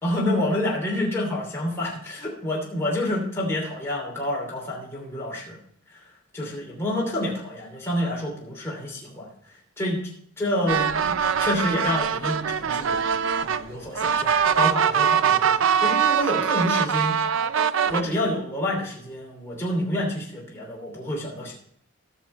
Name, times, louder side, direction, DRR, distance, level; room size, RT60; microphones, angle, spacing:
voice 1, 0.0-5.6 5.9-6.0 6.3-9.3 9.8-10.0 10.4-13.0 13.4-17.2 17.8-21.5, left 1 dB, 10° left, -4 dB, 2.9 m, -28 dB
sound 1, 10.7-18.0, right 7 dB, 65° right, 0.5 m, -22 dB
15.5 x 6.5 x 4.4 m, 0.66 s
head